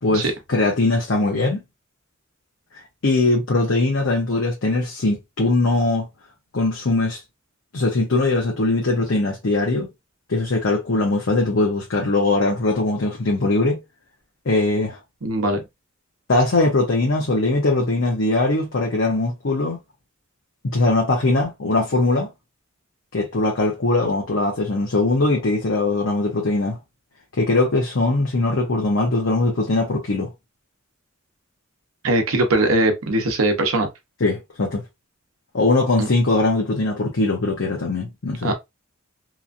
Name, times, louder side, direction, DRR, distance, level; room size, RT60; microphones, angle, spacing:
voice 1, 0.0-1.6 3.0-6.1 6.5-7.2 7.7-9.9 10.3-13.8 14.5-15.0 16.3-19.8 20.7-22.3 23.1-26.8 27.4-30.3 34.2-34.8 35.5-38.5, left 2 dB, 65° left, 0.7 m, -21 dB
voice 2, 15.2-15.6 32.0-33.9 36.0-36.1 38.4-38.5, right 2 dB, 90° right, 0.8 m, -20 dB
3.0 x 2.5 x 2.5 m
head